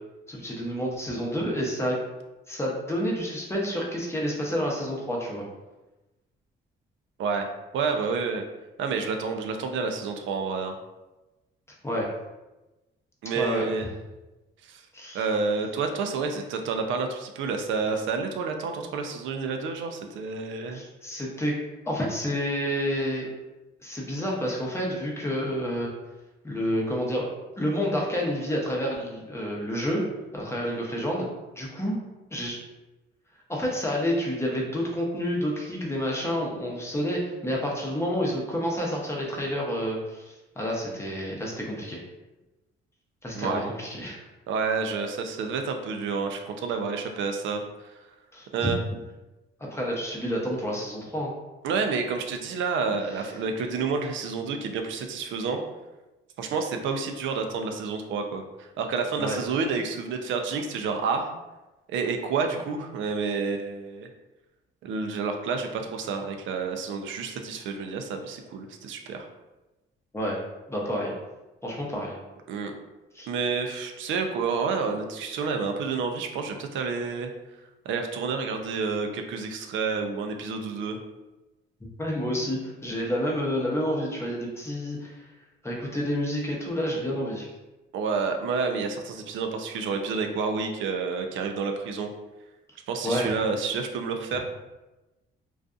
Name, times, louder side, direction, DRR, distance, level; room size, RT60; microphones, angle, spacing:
voice 1, 0.3-2.0 2.5-5.4 11.8-12.1 13.3-13.7 14.9-15.2 20.7-21.6 21.8-23.3 23.8-25.9 26.4-30.0 30.3-31.3 31.6-32.0 32.3-32.6 33.5-42.0 43.2-44.2 48.3-48.7 49.7-51.3 59.2-59.4 70.1-70.4 70.7-71.1 71.6-72.2 73.1-73.3 82.0-85.1 85.6-87.5 93.0-93.3, equal, 15° left, -2 dB, 0.6 m, -29 dB
voice 2, 7.7-8.4 8.8-10.8 13.2-13.9 14.6-14.8 15.1-20.8 43.4-43.7 44.5-47.9 48.5-48.8 51.6-55.6 56.4-61.3 61.9-64.1 64.8-69.3 72.5-72.7 73.3-77.3 77.9-81.0 87.9-92.1 92.9-94.4, right 5 dB, 75° right, 4 dB, 0.4 m, -29 dB
2.5 x 2.3 x 2.3 m, 1.1 s
cardioid pair, 90°, 20 cm